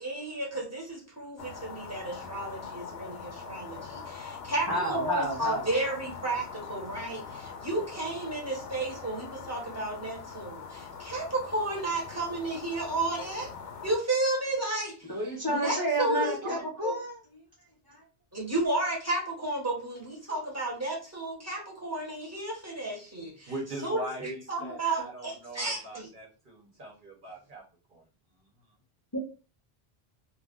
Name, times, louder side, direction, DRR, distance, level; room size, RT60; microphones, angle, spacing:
voice 1, 0.0-13.5 13.8-15.0 15.5-16.9 18.3-23.5 23.8-26.1, right 2 dB, 15° right, -2 dB, 0.9 m, -32 dB
sound 1, 1.4-14.0, left 6 dB, 85° left, 0.8 m, -43 dB
voice 2, 4.7-5.7 15.1-17.2 17.9-18.0 29.1-29.2, right 1 dB, 25° left, -4 dB, 0.6 m, -30 dB
voice 3, 23.5-27.6 27.9-28.0, right 1 dB, 55° right, -2 dB, 1.0 m, -41 dB
2.4 x 2.1 x 3.6 m, 0.35 s
omnidirectional pair, 1.0 m